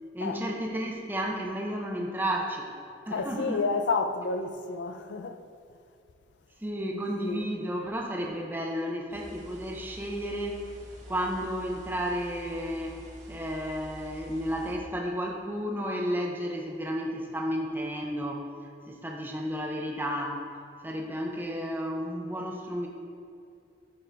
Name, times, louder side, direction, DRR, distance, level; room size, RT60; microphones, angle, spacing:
voice 1, 0.1-2.7 3.1-3.6 6.6-10.6 11.1-13.0 13.3-18.5 18.9-20.4 20.8-22.9, equal, 10° right, 0.5 m, -32 dB
voice 2, 3.1-5.4 6.8-7.5, left 4 dB, 80° left, 0.4 m, -31 dB
sound 1, 9.1-14.7, equal, 45° right, 1.2 m, -47 dB
11.0 x 3.7 x 3.4 m
head